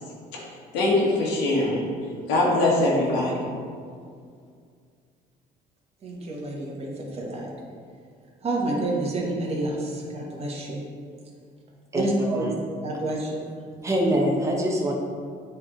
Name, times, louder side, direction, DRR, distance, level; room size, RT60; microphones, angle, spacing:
voice 1, 0.7-1.8 2.3-3.5, left 2 dB, 90° left, -4 dB, 1.3 m, -22 dB
voice 2, 6.0-7.5 8.4-10.8 11.9-12.5 12.8-13.5, right 2 dB, 35° right, -3 dB, 1.3 m, -29 dB
voice 3, 11.9-12.5 13.8-14.9, right 1 dB, 15° right, -1 dB, 1.0 m, -24 dB
8.1 x 3.4 x 3.7 m, 2.2 s
cardioid pair, 110°, 17 cm